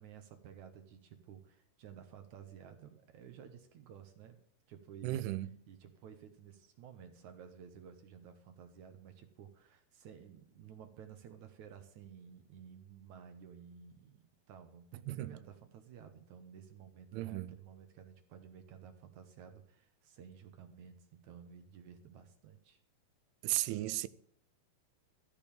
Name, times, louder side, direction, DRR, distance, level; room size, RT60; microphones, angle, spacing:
voice 1, 0.0-4.4 4.7-5.3 5.7-22.8, right 8 dB, 65° right, 2.0 m, -54 dB
voice 2, 5.0-5.5 15.1-15.4 17.1-17.6 23.4-24.1, right 16 dB, 85° right, 2.6 m, -35 dB
14.5 x 5.3 x 8.7 m
omnidirectional pair, 4.5 m